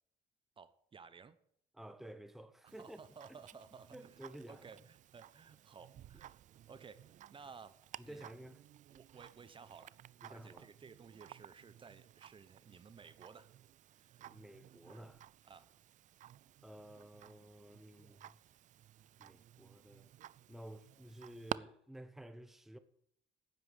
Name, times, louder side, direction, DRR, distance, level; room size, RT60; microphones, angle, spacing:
voice 1, 0.6-1.4 2.6-4.2 4.5-8.3 8.9-10.0 10.3-13.5 13.9-14.4 15.5-15.7, right 5 dB, 30° right, 0.9 m, -56 dB
voice 2, 1.7-3.0 3.9-4.7 8.0-8.6 10.2-10.7 14.3-15.2 16.6-18.4 19.2-20.1 20.5-22.8, right 1 dB, ahead, 0.9 m, -52 dB
Tick-tock, 2.7-21.6, right 12 dB, 45° right, 0.4 m, -53 dB
10.0 x 9.0 x 8.1 m
cardioid pair, 110°, 17 cm